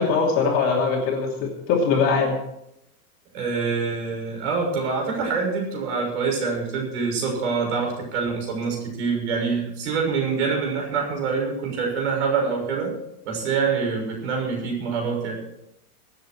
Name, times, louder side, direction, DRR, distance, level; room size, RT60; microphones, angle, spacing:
voice 1, 0.0-2.4, left 5 dB, 30° left, -1 dB, 2.8 m, -21 dB
voice 2, 3.3-12.9 13.2-15.4, right 5 dB, 50° right, 0 dB, 6.4 m, -25 dB
23.0 x 8.6 x 4.6 m, 0.80 s
supercardioid pair, 175°, 44 cm